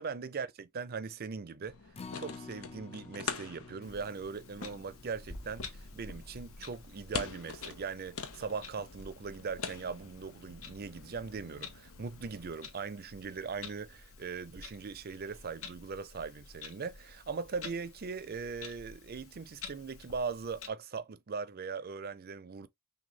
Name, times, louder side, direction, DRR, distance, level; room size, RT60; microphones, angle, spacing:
voice 1, 0.0-1.8 2.2-22.7, right 5 dB, 45° right, 0.5 m, -40 dB
sound 1, 1.6-12.5, left 5 dB, 85° left, 0.9 m, -45 dB
Acoustic guitar, 1.9-8.3 8.7-8.8 9.2-9.3, left 3 dB, 30° left, 0.4 m, -52 dB
Clock, 3.8-20.7, left 4 dB, 70° left, 1.2 m, -50 dB
6.1 x 2.3 x 3.2 m
head